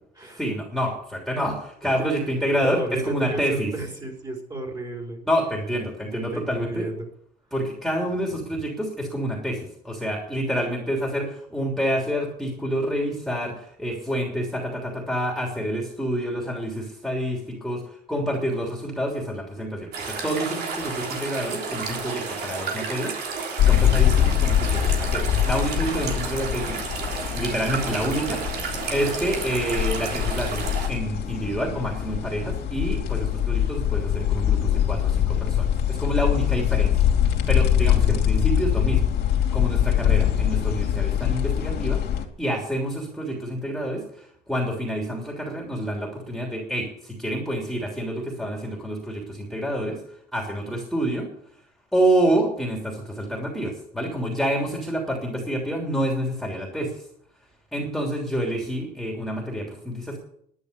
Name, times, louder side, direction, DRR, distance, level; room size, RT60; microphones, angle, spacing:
voice 1, 0.3-3.7 5.2-6.9 7.5-27.1 27.3-28.6 28.9-42.0 42.4-51.3 51.9-57.1 57.7-60.2, equal, ahead, -1 dB, 3.1 m, -28 dB
voice 2, 1.8-2.2 2.6-5.2 6.1-6.9 37.8-38.1, right 2 dB, 25° right, 1 dB, 4.6 m, -33 dB
sound 1, 19.9-30.9, right 5 dB, 70° right, 3.3 m, -31 dB
sound 2, 23.6-42.2, left 10 dB, 75° left, 2.7 m, -23 dB
11.0 x 10.0 x 6.8 m, 0.67 s
cardioid pair, 110°, 17 cm